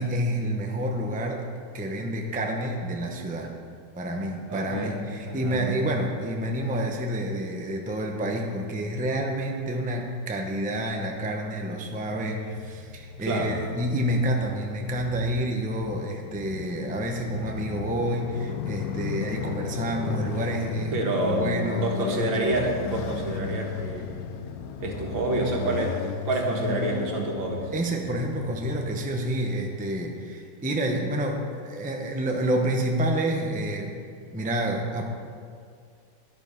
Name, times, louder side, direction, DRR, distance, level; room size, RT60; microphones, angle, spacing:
voice 1, 0.0-1.5 1.7-3.5 4.0-22.1 27.7-34.0 34.3-35.0, right 1 dB, 10° right, 1 dB, 0.5 m, -29 dB
voice 2, 4.5-5.0 5.2-5.7 13.2-13.6 20.9-21.5 21.8-24.1 24.8-26.0 26.3-27.7, right 2 dB, 85° right, 0 dB, 2.3 m, -28 dB
Motorcycle, 11.8-29.9, left 7 dB, 70° left, 0.9 m, -35 dB
11.0 x 9.2 x 5.4 m, 2.2 s
omnidirectional pair, 2.0 m